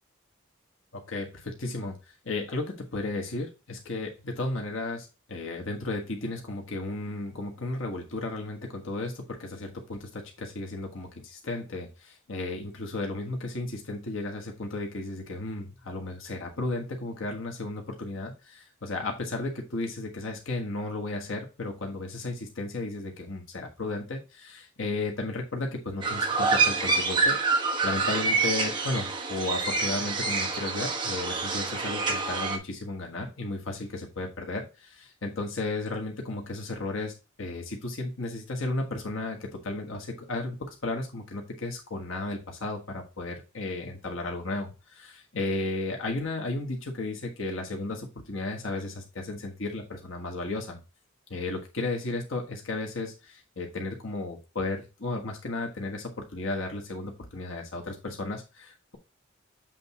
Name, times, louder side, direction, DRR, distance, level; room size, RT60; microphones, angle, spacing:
voice 1, 0.9-27.4 27.8-50.8 51.3-59.0, left 2 dB, 80° left, 1 dB, 1.4 m, -34 dB
sound 1, 26.0-32.6, right 4 dB, 25° right, 1.0 m, -27 dB
7.6 x 3.5 x 4.2 m, 0.29 s
head